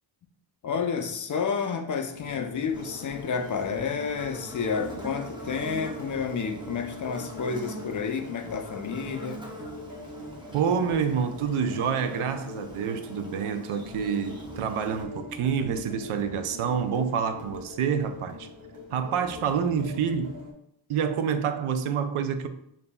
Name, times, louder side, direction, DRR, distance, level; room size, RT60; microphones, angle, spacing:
voice 1, 0.6-9.4, left 6 dB, 40° left, 5 dB, 0.4 m, -30 dB
sound 1, 2.1-20.5, left 2 dB, 35° right, 1.0 m, -42 dB
Buzz, 2.7-15.0, right 2 dB, 10° right, 0.6 m, -45 dB
voice 2, 10.5-18.5 18.9-20.4 20.9-22.5, right 7 dB, 85° right, 8 dB, 0.6 m, -27 dB
7.0 x 2.7 x 2.2 m, 0.74 s
wide cardioid pair, 145°, 50 cm